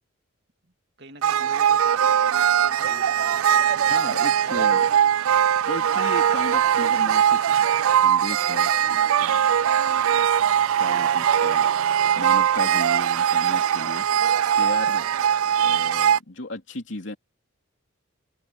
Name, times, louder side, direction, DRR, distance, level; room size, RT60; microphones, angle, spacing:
voice 1, 1.0-4.9 8.8-9.1, right 2 dB, 50° right, 2.8 m, -46 dB
sound 1, 1.2-16.2, right 9 dB, 85° right, 0.4 m, -21 dB
voice 2, 3.9-4.9 5.7-7.7 8.0-8.7 9.2-9.4 10.8-11.7 12.1-14.1 14.5-15.1 15.6-17.2, left 2 dB, 60° left, 3.2 m, -35 dB
head